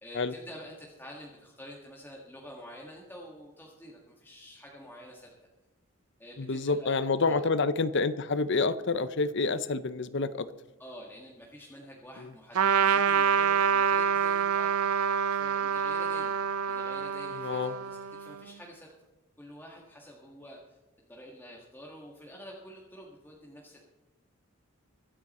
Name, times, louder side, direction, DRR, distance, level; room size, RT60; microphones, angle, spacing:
voice 1, 0.0-5.3 6.2-6.9 7.2-7.5 10.8-14.7 15.3-16.3 16.7-18.9 19.4-20.8 21.1-23.8, equal, 10° left, -2 dB, 1.7 m, -48 dB
voice 2, 6.4-10.5 17.4-17.7, left 3 dB, 55° left, 14 dB, 0.7 m, -28 dB
Trumpet, 12.5-18.4, right 6 dB, 90° right, 0.6 m, -27 dB
23.0 x 8.6 x 4.2 m, 1.1 s
head